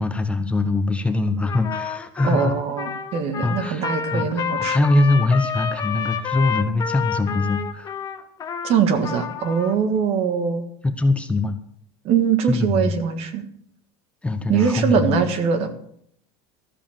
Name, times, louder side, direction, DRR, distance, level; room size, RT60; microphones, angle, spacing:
voice 1, 0.0-2.5 3.4-3.8 4.1-7.9 10.8-11.6 12.5-13.0 14.2-15.2, left 2 dB, 10° left, 8 dB, 0.8 m, -22 dB
Trumpet, 1.5-9.8, left 7 dB, 25° left, 1.1 m, -29 dB
voice 2, 2.2-4.8 8.6-10.6 12.0-13.4 14.5-15.7, right 6 dB, 50° right, 9 dB, 1.6 m, -22 dB
13.5 x 7.2 x 7.3 m, 0.69 s
supercardioid pair, 140°, 13 cm